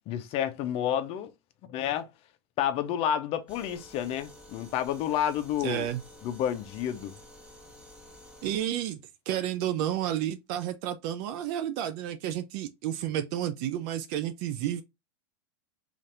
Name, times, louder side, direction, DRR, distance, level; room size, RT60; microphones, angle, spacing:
voice 1, 0.1-1.3 1.7-2.1 2.6-5.9 6.2-7.1, left 10 dB, 45° left, 0.5 m, -30 dB
sound 1, 3.5-8.6, left 1 dB, 10° right, 1.0 m, -51 dB
voice 2, 5.6-6.0 8.4-14.8, right 11 dB, 55° right, 0.4 m, -31 dB
2.7 x 2.5 x 3.2 m
hypercardioid pair, 110°, 14 cm